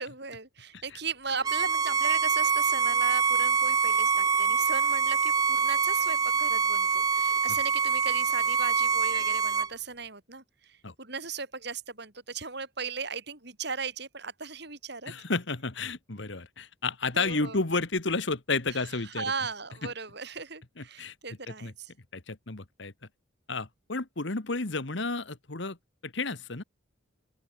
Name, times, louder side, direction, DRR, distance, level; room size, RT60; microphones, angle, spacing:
voice 1, 0.0-15.1 17.1-17.6 18.7-18.8 19.1-21.9, right 5 dB, 55° right, 7.2 m, -37 dB
Bowed string instrument, 1.4-9.7, right 5 dB, 20° right, 0.3 m, -25 dB
voice 2, 15.1-19.3 20.8-21.1 21.5-21.7 22.1-22.9 23.5-25.8 26.0-26.6, left 3 dB, 65° left, 1.6 m, -31 dB
open air
head